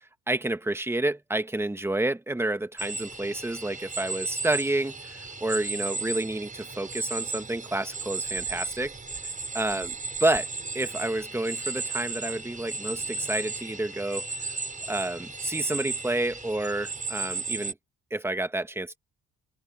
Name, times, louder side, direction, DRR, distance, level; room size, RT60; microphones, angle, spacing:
voice 1, 0.3-8.9 9.5-9.9 10.2-10.5 10.7-14.3 14.9-17.7 18.1-19.0, right 2 dB, 10° right, 1.4 m, -29 dB
sound 1, 2.8-17.7, right 3 dB, 25° right, 5.5 m, -35 dB
open air
cardioid pair, 90°, 30 cm